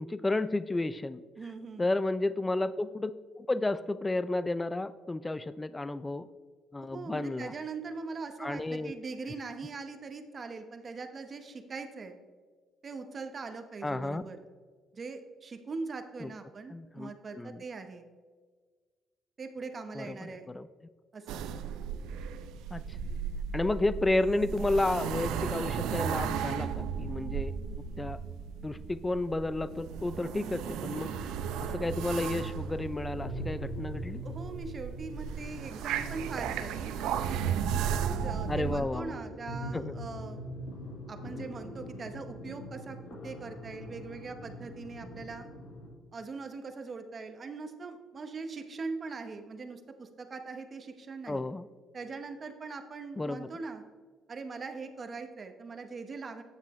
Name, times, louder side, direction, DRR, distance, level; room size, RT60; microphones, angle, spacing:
voice 1, 0.0-1.2 1.8-3.1 3.4-6.3 6.7-7.5 8.4-8.9 13.8-14.2 16.2-16.3 16.7-17.6 20.0-20.7 22.7-22.8 23.5-27.6 28.0-28.2 28.6-31.3 31.6-34.2 38.5-39.2 39.7-40.0 51.3-51.7 53.2-53.5, left 2 dB, 15° left, 15 dB, 0.3 m, -32 dB
voice 2, 1.4-1.9 6.8-12.2 12.8-14.4 14.9-18.0 19.4-20.5 21.1-21.5 34.2-37.5 38.1-40.4 41.1-43.0 43.2-45.5 46.1-51.5 51.9-53.8 54.3-56.4, right 4 dB, 35° right, 7 dB, 0.8 m, -41 dB
sound 1, 21.3-38.8, right 7 dB, 90° right, 0.5 m, -35 dB
sound 2, 29.7-45.9, left 1 dB, 85° left, 1.9 m, -44 dB
9.3 x 7.2 x 3.1 m, 1.5 s
cardioid pair, 110°, 0 cm